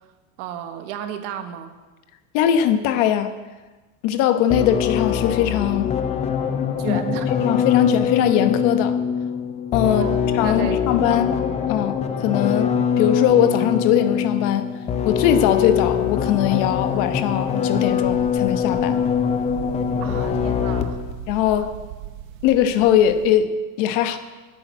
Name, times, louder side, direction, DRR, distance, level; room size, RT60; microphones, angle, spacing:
voice 1, 0.4-1.7 6.8-7.3 9.8-10.2 10.4-10.8 11.0-11.3 20.0-21.0 21.5-21.6, right 9 dB, 60° right, 7 dB, 1.5 m, -32 dB
voice 2, 2.3-3.3 4.0-5.9 6.9-7.0 7.4-9.0 9.7-10.0 10.4-11.4 11.7-11.9 12.2-12.7 13.0-14.7 15.0-19.0 21.3-21.7 22.4-24.2, left 10 dB, 50° left, 9 dB, 1.1 m, -20 dB
sound 1, 4.5-21.1, left 7 dB, 15° left, 0.5 m, -23 dB
sound 2, 17.8-23.3, right 11 dB, 85° right, 1.4 m, -38 dB
10.5 x 8.9 x 7.9 m, 1.2 s
supercardioid pair, 150°, 40 cm